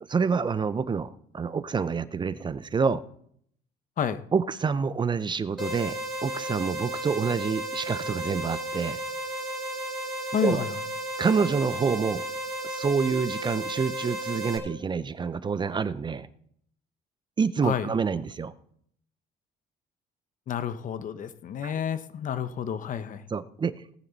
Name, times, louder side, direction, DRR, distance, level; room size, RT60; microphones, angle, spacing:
voice 1, 0.1-3.0 4.3-9.0 10.4-10.7 11.2-12.3 12.6-16.3 17.4-18.5 21.6-21.7 23.3-23.9, right 5 dB, 25° right, 15 dB, 0.6 m, -27 dB
sound 1, 5.6-14.6, right 1 dB, ahead, 5.1 m, -34 dB
voice 2, 10.3-10.7 17.6-17.9 20.5-23.2, left 8 dB, 50° left, 13 dB, 0.9 m, -30 dB
18.0 x 9.2 x 4.1 m, 0.66 s
cardioid pair, 110°, 17 cm